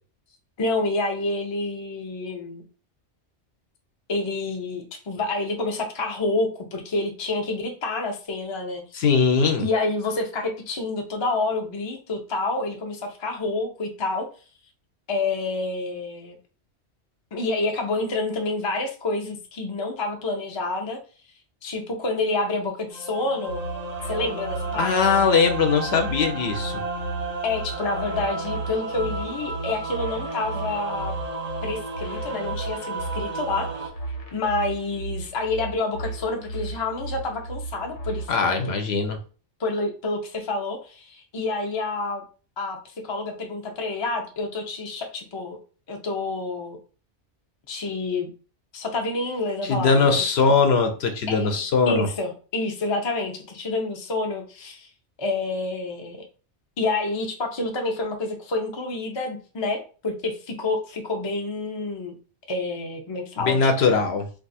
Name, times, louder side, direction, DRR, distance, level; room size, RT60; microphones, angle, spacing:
voice 1, 0.6-2.6 4.1-8.8 9.6-14.3 15.1-16.4 17.3-21.0 21.6-23.6 24.0-25.2 27.4-31.1 31.6-33.9 34.3-38.6 39.6-42.2 42.6-45.6 45.9-46.8 47.7-48.3 48.7-50.3 51.3-54.9 55.2-56.2 56.8-62.1 62.5-64.0, left 2 dB, 35° left, 2 dB, 0.4 m, -28 dB
voice 2, 8.9-9.7 24.8-26.8 38.3-39.2 49.6-52.1 63.4-64.3, left 5 dB, 70° left, 5 dB, 0.8 m, -21 dB
sound 1, 22.9-33.9, right 2 dB, 45° right, 0.6 m, -33 dB
sound 2, 23.5-38.3, right 2 dB, 90° left, 1.1 m, -35 dB
2.5 x 2.4 x 4.0 m, 0.38 s
omnidirectional pair, 1.2 m